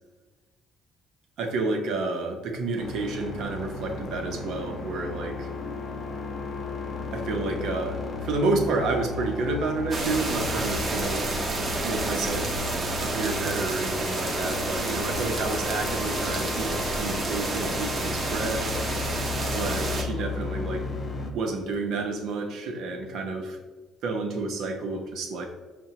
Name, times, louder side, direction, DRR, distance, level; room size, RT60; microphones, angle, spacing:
voice 1, 1.4-5.5 7.1-11.3 11.8-12.5 13.0-18.8 19.5-20.9 21.2-23.6 24.0-25.5, right 3 dB, 70° right, 3 dB, 0.7 m, -30 dB
sound 1, 2.8-21.3, left 3 dB, 30° left, 0.5 m, -34 dB
sound 2, 9.9-20.0, right 2 dB, 30° right, 0.6 m, -30 dB
5.6 x 2.2 x 2.9 m, 1.3 s
cardioid pair, 120°, 0 cm